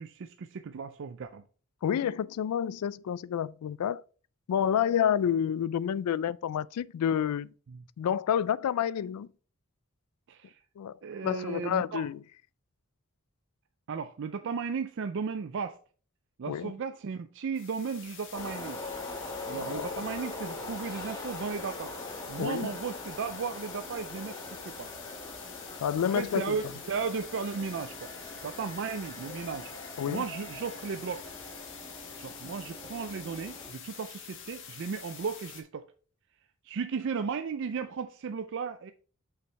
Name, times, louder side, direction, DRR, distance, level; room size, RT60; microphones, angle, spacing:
voice 1, 0.0-1.4 7.7-7.8 10.3-10.6 11.0-12.1 13.9-15.8 16.4-18.8 19.4-21.9 22.3-25.0 26.1-28.1 28.4-29.7 30.1-31.3 32.2-35.9 36.6-38.9, right 5 dB, 55° right, 0.4 m, -35 dB
voice 2, 1.8-4.0 4.5-7.5 8.0-9.3 10.8-11.0 11.2-12.2 16.5-16.7 19.6-19.9 22.4-22.7 25.8-26.6 30.0-30.2, left 9 dB, 90° left, 0.3 m, -29 dB
sound 1, 17.5-35.6, left 8 dB, 60° left, 1.3 m, -46 dB
sound 2, 18.3-33.7, left 2 dB, 20° left, 1.7 m, -42 dB
6.1 x 5.8 x 3.3 m
head